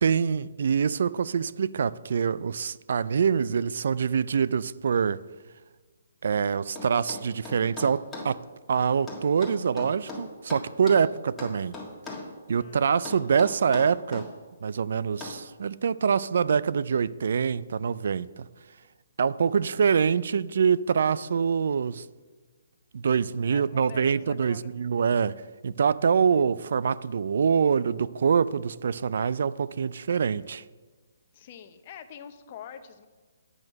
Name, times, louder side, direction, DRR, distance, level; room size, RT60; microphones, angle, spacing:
voice 1, 0.0-5.2 6.2-8.4 8.7-11.7 12.5-14.3 14.6-18.5 19.2-22.0 22.9-25.4 25.6-30.6, right 6 dB, 65° right, 0.3 m, -25 dB
sound 1, 6.8-8.3 9.1-11.1 11.4-12.3 13.0-14.3 15.2-15.4, left 2 dB, 10° left, 1.6 m, -39 dB
voice 2, 12.5-13.0 23.5-24.7 26.1-26.4 31.3-33.1, left 8 dB, 40° left, 0.8 m, -46 dB
8.7 x 6.2 x 6.5 m
hypercardioid pair, 150°, 0 cm